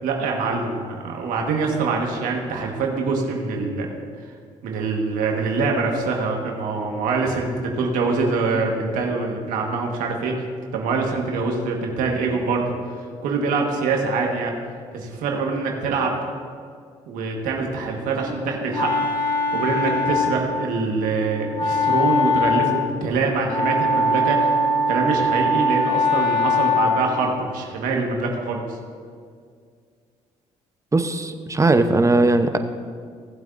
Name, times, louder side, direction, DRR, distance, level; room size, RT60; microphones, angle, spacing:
voice 1, 0.0-3.9 4.6-10.3 10.7-12.7 13.2-14.5 14.9-16.1 17.1-18.9 19.5-24.6 24.9-28.8, right 4 dB, 80° right, 1 dB, 1.5 m, -24 dB
Wind instrument woodwind instrument, 18.2-27.3, left 2 dB, 30° left, 1.7 m, -22 dB
voice 2, 30.9-32.6, right 2 dB, 20° right, 8 dB, 0.8 m, -18 dB
18.0 x 7.9 x 2.6 m, 2.1 s
supercardioid pair, 65°, 14 cm